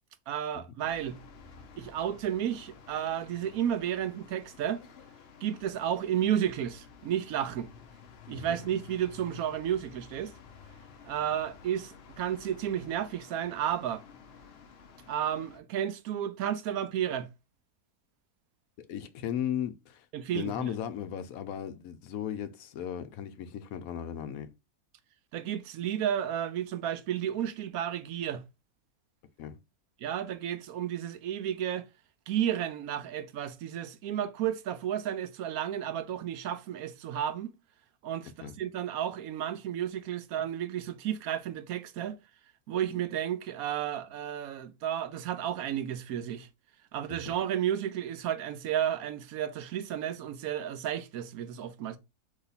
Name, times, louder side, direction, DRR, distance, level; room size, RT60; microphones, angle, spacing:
voice 1, 0.3-1.2 1.8-4.8 5.4-7.7 8.3-10.3 11.0-14.0 15.1-17.3 20.1-20.7 25.3-28.4 30.0-31.9 32.3-37.5 38.0-42.2 42.7-46.5 46.9-52.0, right 10 dB, 85° right, 1.1 m, -32 dB
Next to Shell Gas Station Müllerstraße Berlin Germany, 0.8-15.6, left 6 dB, 55° left, 0.8 m, -52 dB
voice 2, 18.8-20.1 20.3-24.5 29.4-29.6 38.4-38.6 47.1-47.3, left 9 dB, 75° left, 1.1 m, -36 dB
4.1 x 3.1 x 4.0 m
omnidirectional pair, 1.5 m